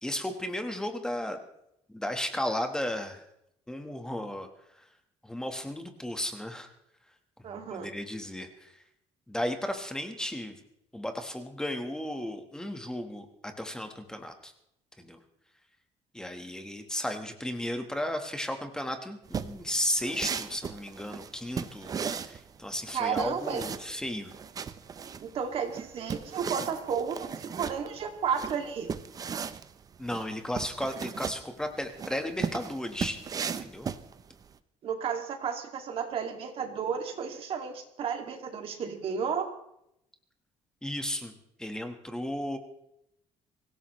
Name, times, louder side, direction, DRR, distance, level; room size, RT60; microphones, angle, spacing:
voice 1, 0.0-1.4 1.9-3.2 3.7-4.5 4.8-4.9 5.2-6.7 7.7-8.8 9.3-10.5 10.9-14.5 15.0-15.2 16.1-24.3 30.0-33.2 33.6-33.9 40.8-41.3 41.6-42.6, left 1 dB, 5° left, 6 dB, 1.4 m, -34 dB
voice 2, 7.4-7.9 22.9-23.6 25.2-28.9 34.8-39.5, right 6 dB, 50° right, 4 dB, 2.3 m, -32 dB
sound 1, 19.3-34.5, right 6 dB, 30° right, 0.7 m, -37 dB
24.5 x 16.0 x 3.2 m, 0.79 s
cardioid pair, 150°, 12 cm